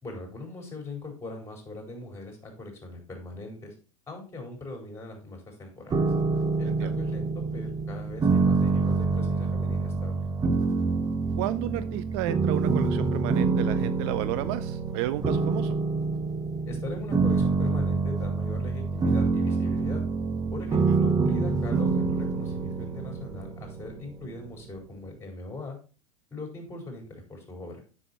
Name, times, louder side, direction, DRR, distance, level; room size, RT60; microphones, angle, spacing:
voice 1, 0.0-3.7 4.1-6.1 6.6-10.3 16.7-20.0 20.5-25.8 26.3-27.8, left 2 dB, 15° left, 2 dB, 4.1 m, -40 dB
sound 1, 5.9-24.9, right 4 dB, 20° right, 1.0 m, -26 dB
voice 2, 6.6-7.0 11.4-15.8 20.7-21.0, right 16 dB, 50° right, 15 dB, 0.4 m, -32 dB
7.6 x 6.4 x 4.2 m, 0.35 s
hypercardioid pair, 90°, 18 cm